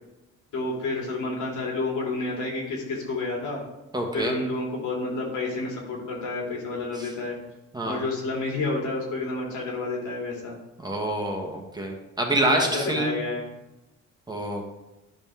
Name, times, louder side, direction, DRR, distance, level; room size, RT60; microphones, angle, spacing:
voice 1, 0.5-3.6 4.1-7.4 7.8-10.6 12.4-13.5, left 3 dB, 75° left, -2 dB, 2.8 m, -30 dB
voice 2, 3.9-4.4 7.0-7.1 7.7-8.0 10.8-13.2 14.3-14.7, right 1 dB, 15° right, 1 dB, 1.5 m, -27 dB
10.5 x 5.4 x 3.6 m, 0.95 s
cardioid pair, 90°, 30 cm